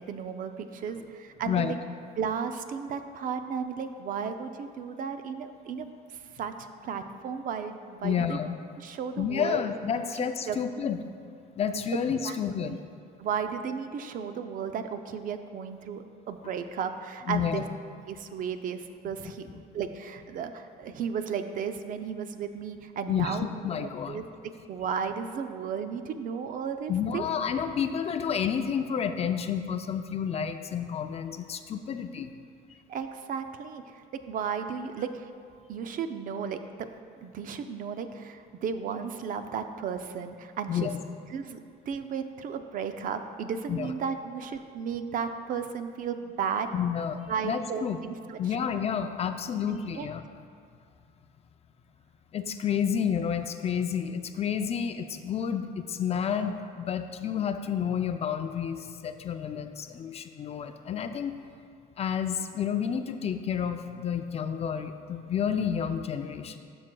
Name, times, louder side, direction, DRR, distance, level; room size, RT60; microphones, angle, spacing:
voice 1, 0.0-1.8 2.2-5.9 6.3-8.4 8.8-9.6 10.5-10.6 12.2-12.4 12.6-12.8 13.2-17.6 18.1-23.5 24.1-24.2 24.7-27.3 32.9-35.3 35.7-36.9 37.2-40.9 41.3-41.6 41.9-46.7 47.3-48.6 49.7-50.1, right 7 dB, 55° right, 8 dB, 0.5 m, -34 dB
voice 2, 8.0-8.5 9.2-11.0 11.6-12.8 17.3-17.6 19.1-19.2 23.1-24.3 26.9-32.3 40.7-41.0 43.7-43.9 46.7-48.0 48.4-50.2 52.3-61.3 62.0-66.6, left 7 dB, 40° left, 8 dB, 0.4 m, -30 dB
12.0 x 6.1 x 2.3 m, 2.3 s
cardioid pair, 110°, 17 cm